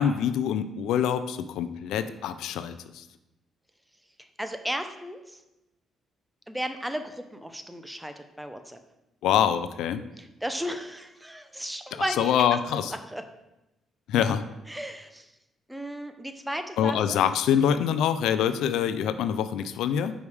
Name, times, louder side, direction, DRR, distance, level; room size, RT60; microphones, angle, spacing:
voice 1, 0.0-3.0 9.2-10.0 12.2-12.9 14.1-14.4 16.8-20.1, left 9 dB, 85° left, 11 dB, 0.4 m, -25 dB
voice 2, 4.2-5.4 6.5-8.8 10.2-13.2 14.7-15.3 15.7-17.2, equal, 5° right, 8 dB, 0.6 m, -35 dB
5.2 x 4.8 x 4.8 m, 0.94 s
cardioid pair, 90°, 0 cm